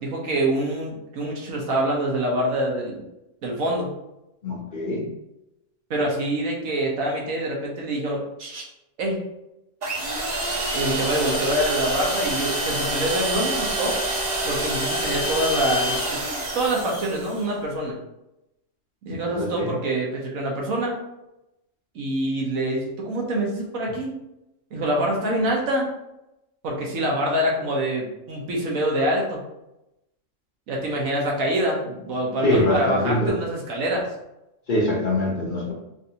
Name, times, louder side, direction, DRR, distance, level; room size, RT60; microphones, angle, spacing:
voice 1, 0.0-3.0 3.4-3.9 5.9-8.6 9.0-9.2 10.7-14.0 14.4-16.2 16.5-18.0 19.0-21.0 21.9-24.1 24.7-25.9 26.6-29.4 30.7-34.1, right 1 dB, 85° right, -2 dB, 1.3 m, -25 dB
voice 2, 4.4-5.1 19.1-19.7 32.4-33.4 34.7-35.7, left 1 dB, 45° left, -4 dB, 0.9 m, -24 dB
sound 1, 9.8-17.4, right 1 dB, 45° right, 0.6 m, -27 dB
3.8 x 2.6 x 2.8 m, 0.90 s
omnidirectional pair, 1.4 m